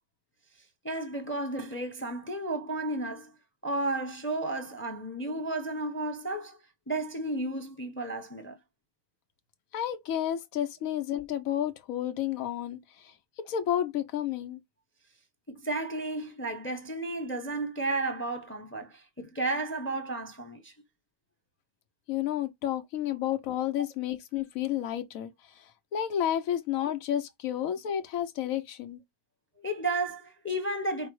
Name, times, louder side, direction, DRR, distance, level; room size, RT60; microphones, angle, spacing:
voice 1, 0.8-3.4 3.6-6.6 6.9-8.6 15.5-20.7 29.6-31.1, right 2 dB, 10° left, 0.6 m, -33 dB
voice 2, 9.7-12.8 13.5-14.6 22.1-25.3 25.9-29.0, left 10 dB, 80° left, 1.2 m, -31 dB
5.4 x 2.0 x 4.6 m
omnidirectional pair, 1.4 m